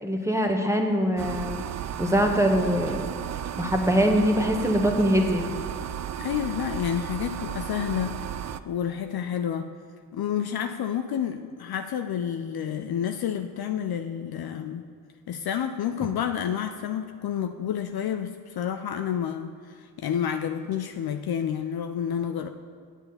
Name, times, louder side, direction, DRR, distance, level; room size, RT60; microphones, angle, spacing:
voice 1, 0.0-1.6 2.0-3.1 3.6-5.4, equal, 5° right, 3 dB, 1.3 m, -23 dB
sound 1, 1.2-8.6, right 10 dB, 35° right, 0.5 m, -34 dB
voice 2, 6.2-8.4 8.6-9.7 10.1-14.8 15.3-22.5, left 9 dB, 50° left, 7 dB, 0.6 m, -29 dB
8.1 x 7.4 x 5.7 m, 2.2 s
hypercardioid pair, 45°, 47 cm